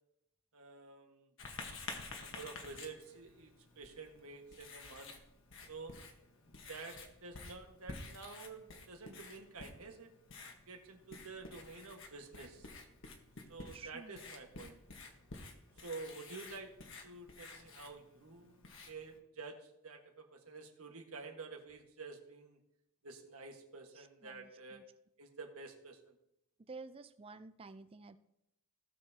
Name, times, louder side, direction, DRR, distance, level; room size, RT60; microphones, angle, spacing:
voice 1, 0.5-1.3 2.2-5.2 5.7-6.0 6.7-10.1 10.7-12.7 13.5-14.8 15.8-16.7 17.0-19.6 19.8-22.6 23.0-24.8 25.2-26.1, right 4 dB, 85° right, 3 dB, 1.6 m, -50 dB
Writing, 1.4-19.2, left 3 dB, 60° left, 1.3 m, -51 dB
voice 2, 13.7-14.2 23.9-24.8 26.6-28.2, right 3 dB, 25° right, 12 dB, 0.4 m, -51 dB
17.0 x 6.8 x 2.9 m, 0.81 s
head